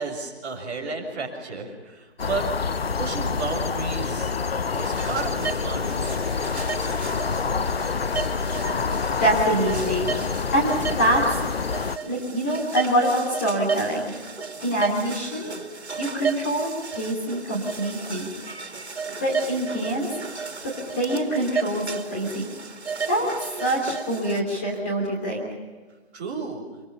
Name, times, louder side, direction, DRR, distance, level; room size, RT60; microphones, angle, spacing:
voice 1, 0.0-2.5 3.0-4.3 4.7-6.2 14.5-14.6 26.1-26.6, right 4 dB, 10° right, -6 dB, 3.5 m, -32 dB
sound 1, 2.2-12.0, left 5 dB, 65° left, 0.8 m, -27 dB
sound 2, 4.7-24.4, right 5 dB, 75° right, 2.9 m, -34 dB
voice 2, 9.2-10.1 10.5-11.4 12.0-14.1 14.6-15.5 15.9-18.3 19.2-20.2 20.6-22.5 23.1-25.4, right 1 dB, 15° left, -5 dB, 3.2 m, -25 dB
26.0 x 24.0 x 5.5 m, 1.3 s
figure-of-eight pair, 170°, 33 cm